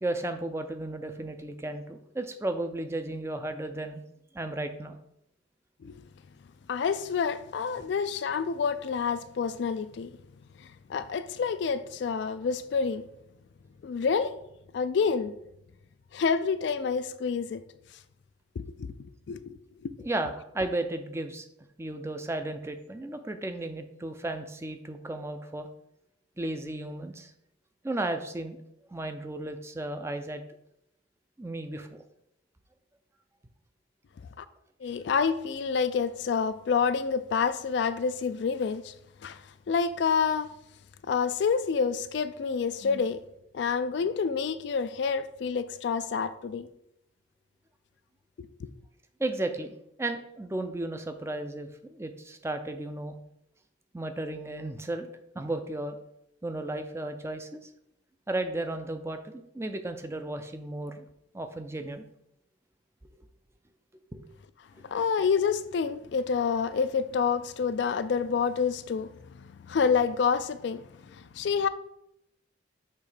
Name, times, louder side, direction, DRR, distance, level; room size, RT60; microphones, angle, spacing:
voice 1, 0.0-4.0 4.3-5.0 7.8-7.9 20.0-21.5 21.8-25.7 26.4-27.3 27.8-28.6 28.9-30.4 31.4-32.0 49.2-53.2 53.9-55.1 55.3-56.0 56.4-57.6 58.3-61.0 61.3-62.1 64.1-64.3, right 2 dB, 15° right, 0.4 m, -34 dB
voice 2, 6.7-10.1 10.9-13.0 13.8-14.4 14.7-15.3 16.1-17.6 18.6-18.9 19.3-19.5 19.8-19.9 34.4-34.5 34.8-38.9 39.2-39.4 39.7-40.5 41.1-43.2 43.5-46.7 48.4-48.7 64.9-69.1 69.7-70.8 71.4-71.7, left 6 dB, 60° left, 0.3 m, -28 dB
6.6 x 3.1 x 4.9 m
head